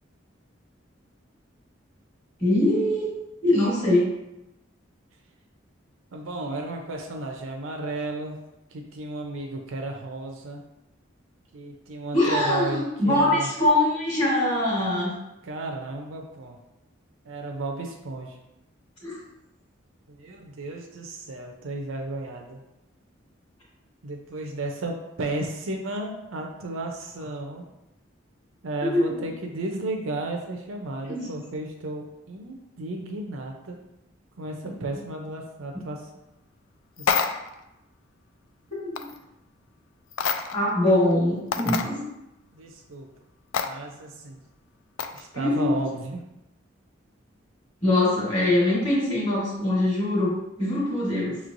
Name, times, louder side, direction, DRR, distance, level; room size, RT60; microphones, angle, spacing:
voice 1, 2.4-4.1 12.1-15.1 19.0-19.2 28.9-29.1 31.1-31.3 34.6-34.7 35.7-35.8 38.7-39.1 40.5-42.0 45.3-45.8 47.8-51.4, left 1 dB, 25° left, -6 dB, 1.2 m, -23 dB
voice 2, 6.1-8.4 8.7-10.6 11.5-13.5 15.4-16.6 17.3-18.4 20.1-22.6 24.0-27.6 28.6-33.8 34.4-36.1 37.0-37.1 42.5-43.1 43.6-44.4 45.1-46.2, right 2 dB, 90° right, 2 dB, 0.6 m, -33 dB
sound 1, 37.0-37.6 39.0-39.2 40.1-40.7 41.1-41.2 41.5-41.9 43.5-43.7 45.0-45.3, left 6 dB, 90° left, 0.4 m, -26 dB
5.8 x 3.1 x 2.5 m, 0.90 s
head